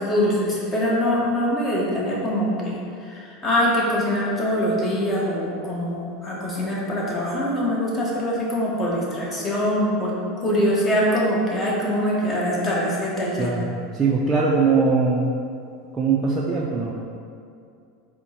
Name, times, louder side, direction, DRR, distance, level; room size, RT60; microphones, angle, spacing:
voice 1, 0.0-13.5, equal, 25° left, -5 dB, 1.1 m, -23 dB
voice 2, 13.4-15.3 15.9-16.9, right 4 dB, 25° right, -4 dB, 0.4 m, -21 dB
4.1 x 2.1 x 4.3 m, 2.4 s
hypercardioid pair, 100°, 0 cm